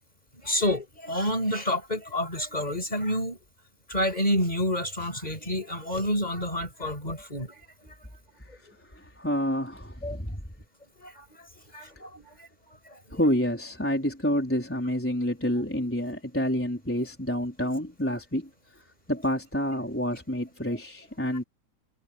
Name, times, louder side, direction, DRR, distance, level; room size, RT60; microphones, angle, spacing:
voice 1, 0.4-3.4 3.9-7.9 10.0-10.2 11.0-11.2 11.7-12.3 13.1-13.2, left 1 dB, 25° left, 6.3 m, -29 dB
voice 2, 8.4-10.4 11.7-11.8 13.1-21.4, equal, 5° left, 4.2 m, -29 dB
omnidirectional pair, 1.8 m